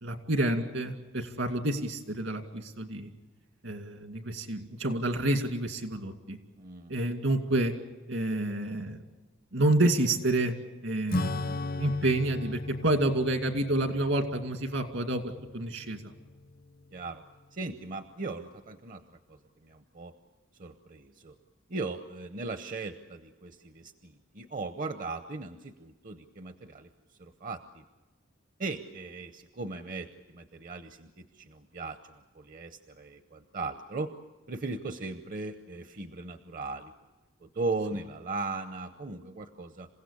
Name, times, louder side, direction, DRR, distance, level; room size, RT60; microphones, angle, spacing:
voice 1, 0.0-3.1 3.6-6.4 6.9-7.7 8.1-9.0 9.5-10.5 10.8-16.0, right 1 dB, 75° right, 5 dB, 2.3 m, -29 dB
voice 2, 6.6-7.1 16.9-17.2 17.5-19.0 19.3-19.4 19.6-20.1 20.6-21.3 21.7-26.9 27.2-27.8 28.6-34.1 34.5-36.9 37.4-39.9, right 3 dB, 45° right, 9 dB, 0.8 m, -38 dB
Acoustic guitar / Strum, 11.1-17.0, left 2 dB, 50° left, 0.7 m, -37 dB
27.5 x 16.5 x 8.4 m, 1.2 s
head